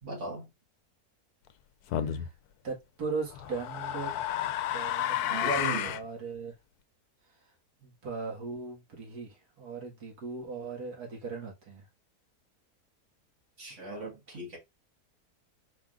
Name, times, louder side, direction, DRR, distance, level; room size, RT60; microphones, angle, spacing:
voice 1, 0.0-0.5 2.0-2.1 5.3-6.0 13.6-14.6, right 2 dB, 50° right, 1.9 m, -36 dB
sound 1, 1.9-2.3 3.3-6.1, left 11 dB, 80° left, 1.1 m, -31 dB
voice 2, 1.9-2.3 2.6-4.1 4.7-6.5 7.8-11.9, right 4 dB, 75° right, 2.3 m, -38 dB
4.7 x 3.6 x 2.4 m
omnidirectional pair, 1.7 m